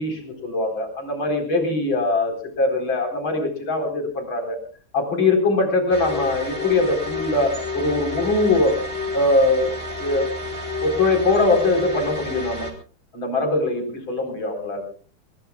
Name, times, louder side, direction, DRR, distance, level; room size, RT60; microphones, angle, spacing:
voice 1, 0.0-4.6 4.9-8.7 9.1-9.7 10.0-10.3 10.8-12.7 13.1-14.8, left 2 dB, 75° left, 3 dB, 4.9 m, -22 dB
sound 1, 5.9-12.7, left 2 dB, 30° right, 3.3 m, -30 dB
23.0 x 21.0 x 2.3 m, 0.41 s
omnidirectional pair, 2.2 m